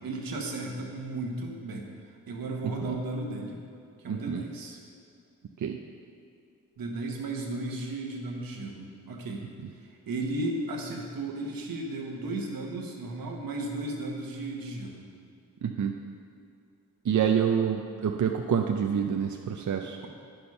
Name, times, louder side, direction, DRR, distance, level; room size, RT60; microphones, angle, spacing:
voice 1, 0.0-1.9 2.3-3.6 4.0-4.8 6.8-9.4 9.8-15.1 20.0-20.1, right 2 dB, 85° right, 1 dB, 1.4 m, -35 dB
voice 2, 4.1-4.4 5.6-5.8 15.6-15.9 17.1-20.0, right 8 dB, 60° right, 3 dB, 0.6 m, -27 dB
9.1 x 7.0 x 5.5 m, 2.4 s
cardioid pair, 55°, 34 cm